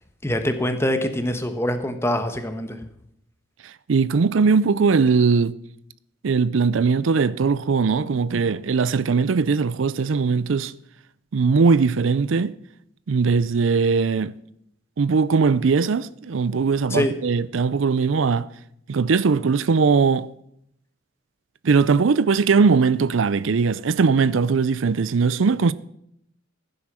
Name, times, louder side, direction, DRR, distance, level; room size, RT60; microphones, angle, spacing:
voice 1, 0.2-2.8 16.9-17.1, left 1 dB, 15° left, 1.3 m, -24 dB
voice 2, 3.9-5.6 6.2-10.7 11.3-12.5 13.1-14.3 15.0-18.5 18.9-20.3 21.6-25.7, right 5 dB, 75° right, 0.5 m, -20 dB
15.5 x 9.7 x 6.2 m
head